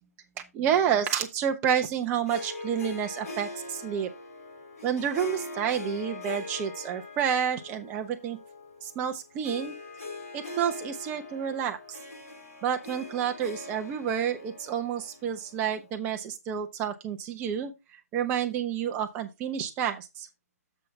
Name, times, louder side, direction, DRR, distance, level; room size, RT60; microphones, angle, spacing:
voice 1, 0.5-4.1 4.8-8.4 8.8-9.7 10.3-12.0 12.6-17.7 18.1-20.3, right 8 dB, 15° right, 1.0 m, -29 dB
Harp, 2.3-15.9, left 2 dB, 65° left, 4.9 m, -41 dB
7.4 x 7.4 x 3.3 m
figure-of-eight pair, 140°, 9 cm